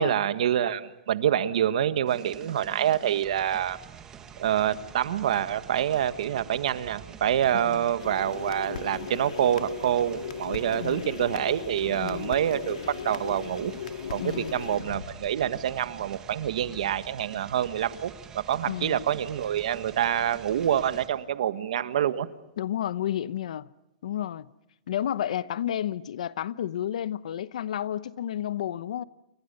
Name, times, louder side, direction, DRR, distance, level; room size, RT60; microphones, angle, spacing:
voice 1, 0.0-3.8 4.4-13.7 14.1-22.3, right 10 dB, 65° right, 1.5 m, -26 dB
sound 1, 2.1-21.1, right 7 dB, 15° right, 1.5 m, -47 dB
voice 2, 7.5-7.9 10.7-11.1 12.0-12.3 14.2-14.5 18.6-19.0 22.6-23.7 24.0-24.5 24.9-29.0, left 11 dB, 65° left, 0.9 m, -31 dB
sound 2, 8.0-16.0, left 8 dB, 85° left, 2.0 m, -38 dB
29.0 x 24.5 x 6.8 m
hypercardioid pair, 170°, 4 cm